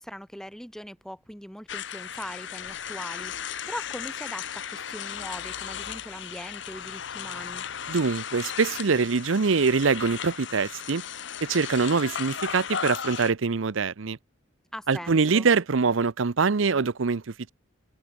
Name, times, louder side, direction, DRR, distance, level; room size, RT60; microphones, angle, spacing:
voice 1, 0.0-7.6 14.7-15.5, equal, 5° left, 5.1 m, -41 dB
sound 1, 1.7-13.3, left 8 dB, 65° left, 0.8 m, -36 dB
voice 2, 7.9-11.0 11.4-14.2 14.9-17.2, right 4 dB, 75° right, 0.7 m, -24 dB
head